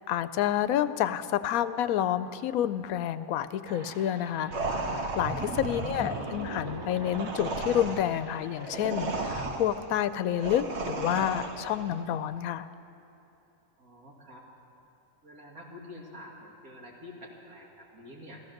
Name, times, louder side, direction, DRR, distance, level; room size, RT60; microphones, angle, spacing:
voice 1, 0.1-12.7, left 10 dB, 90° left, 13 dB, 1.0 m, -29 dB
sound 1, 3.6-9.5, right 3 dB, 30° right, 0.4 m, -42 dB
sound 2, 4.5-11.9, right 2 dB, 55° right, 1.3 m, -35 dB
voice 2, 5.3-6.1 13.8-14.5 15.2-18.4, left 1 dB, 85° right, -2 dB, 2.7 m, -48 dB
14.5 x 14.5 x 6.5 m, 2.7 s
omnidirectional pair, 1.5 m